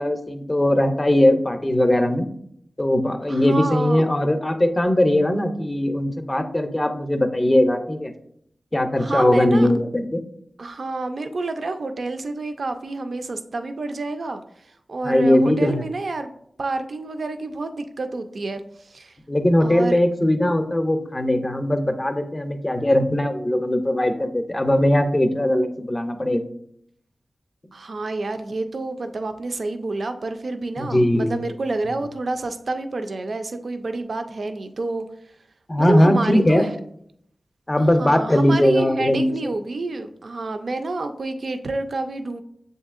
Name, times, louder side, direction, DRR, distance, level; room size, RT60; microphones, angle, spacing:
voice 1, 0.0-2.3 2.8-8.1 8.7-10.2 15.0-15.8 19.3-26.4 30.8-31.4 35.7-36.7 37.7-39.3, left 1 dB, 25° left, 7 dB, 0.5 m, -20 dB
voice 2, 3.3-4.0 9.0-9.7 10.6-14.4 14.9-16.3 16.6-19.2 19.6-20.0 27.7-35.0 35.8-36.7 37.8-42.4, right 2 dB, 70° right, 7 dB, 0.3 m, -28 dB
6.8 x 2.7 x 2.4 m, 0.69 s
wide cardioid pair, 55°, 0 cm